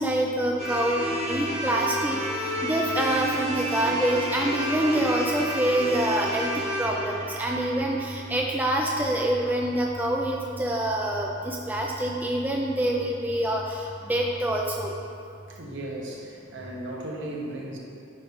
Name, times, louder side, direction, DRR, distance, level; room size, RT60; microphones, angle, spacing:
voice 1, 0.0-14.9, right 1 dB, 10° right, -1 dB, 0.3 m, -26 dB
sound 1, 0.6-8.7, equal, 35° right, 1.3 m, -31 dB
voice 2, 15.5-17.8, right 1 dB, 65° right, -2 dB, 1.1 m, -36 dB
8.7 x 3.1 x 5.1 m, 2.5 s
head